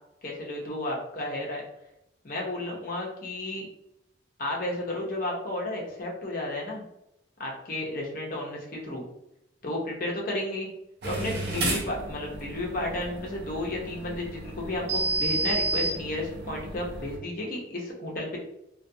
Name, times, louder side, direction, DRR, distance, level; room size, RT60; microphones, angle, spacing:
voice 1, 0.2-1.6 2.2-3.7 4.4-6.8 7.4-9.0 9.6-10.7 11.0-18.4, left 1 dB, 45° left, -2 dB, 0.6 m, -32 dB
sound 1, 11.0-17.2, right 2 dB, 55° right, 0.6 m, -31 dB
2.4 x 2.2 x 2.6 m, 0.84 s
head